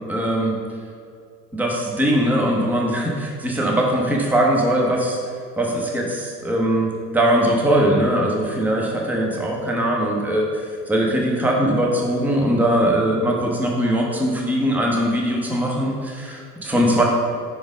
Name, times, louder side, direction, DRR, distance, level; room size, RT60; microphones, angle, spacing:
voice 1, 0.1-0.6 1.5-5.2 5.6-10.5 10.9-17.0, right 1 dB, 5° right, -1 dB, 0.8 m, -21 dB
5.2 x 5.0 x 5.1 m, 2.2 s
figure-of-eight pair, 85°, 49 cm